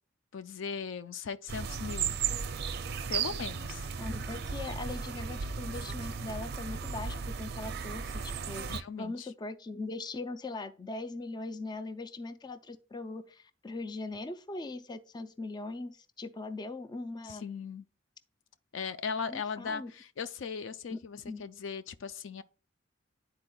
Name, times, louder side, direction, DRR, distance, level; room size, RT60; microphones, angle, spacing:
voice 1, 0.3-2.2 3.1-3.9 8.7-9.3 17.2-17.8 18.7-22.4, left 6 dB, 80° left, 0.4 m, -38 dB
sound 1, 1.5-8.8, right 6 dB, 55° right, 0.5 m, -35 dB
voice 2, 4.0-17.4 19.3-19.9 20.9-21.5, left 2 dB, 20° left, 0.4 m, -40 dB
11.5 x 4.2 x 2.2 m
head